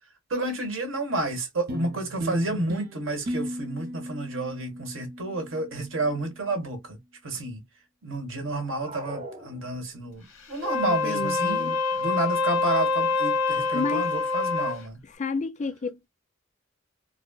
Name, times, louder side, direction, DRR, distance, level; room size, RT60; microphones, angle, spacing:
voice 1, 0.3-7.0 7.2-7.6 8.0-11.7 12.0-15.0, right 2 dB, 85° right, 1.4 m, -30 dB
sound 1, 1.7-6.3, right 1 dB, 50° right, 0.6 m, -36 dB
sound 2, 8.6-10.2, right 1 dB, 30° right, 0.9 m, -41 dB
Wind instrument woodwind instrument, 10.5-14.8, left 4 dB, 65° left, 1.5 m, -26 dB
voice 2, 10.8-11.8 13.7-14.1 15.2-16.1, left 4 dB, 35° left, 0.4 m, -31 dB
4.1 x 2.0 x 2.3 m
head